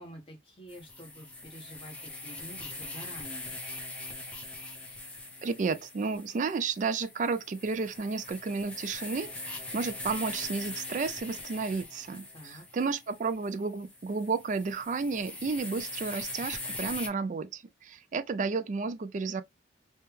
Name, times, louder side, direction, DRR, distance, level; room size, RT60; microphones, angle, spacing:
voice 1, 0.0-3.6 12.3-12.6, equal, 30° left, 0.9 m, -48 dB
sound 1, 0.7-17.1, left 2 dB, 5° left, 0.6 m, -42 dB
voice 2, 5.4-19.4, right 4 dB, 40° right, 0.3 m, -32 dB
3.2 x 2.2 x 3.2 m
head